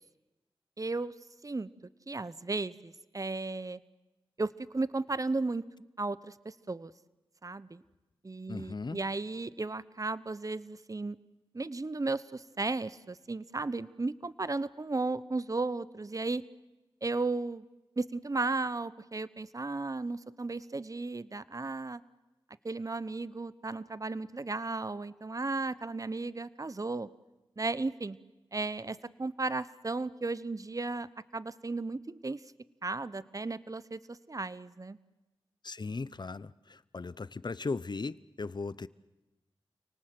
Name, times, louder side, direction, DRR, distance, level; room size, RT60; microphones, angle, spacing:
voice 1, 0.8-1.1 1.4-1.7 2.1-3.8 4.4-5.6 6.0-6.9 7.4-7.8 8.2-11.2 11.5-16.4 17.0-17.6 18.0-22.0 22.6-27.1 27.6-28.2 28.5-31.1 31.3-32.4 32.8-35.0, right 3 dB, 35° right, 17 dB, 0.9 m, -35 dB
voice 2, 8.5-9.0 35.6-38.9, left 4 dB, 50° left, 19 dB, 0.8 m, -37 dB
29.0 x 19.0 x 7.8 m, 1.0 s
cardioid pair, 40°, 10 cm